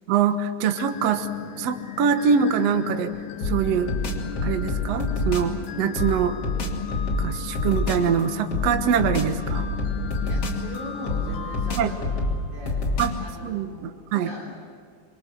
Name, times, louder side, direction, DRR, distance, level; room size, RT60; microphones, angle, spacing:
voice 1, 0.1-1.3 1.6-3.1 3.4-3.9 4.4-6.4 7.2-9.7 11.7-11.9 13.0-13.1 13.4-14.3, right 7 dB, 80° right, 8 dB, 1.4 m, -24 dB
sound 1, 0.7-13.0, left 6 dB, 60° left, 5.4 m, -42 dB
sound 2, 0.9-11.9, left 11 dB, 80° left, 3.1 m, -37 dB
sound 3, 3.4-5.5 6.0-8.1 8.5-10.8 11.1-13.3, left 2 dB, 35° left, 3.8 m, -27 dB
voice 2, 10.2-12.8 13.2-14.6, right 1 dB, 55° right, -3 dB, 4.8 m, -40 dB
27.0 x 25.5 x 7.7 m, 2.1 s
omnidirectional pair, 5.1 m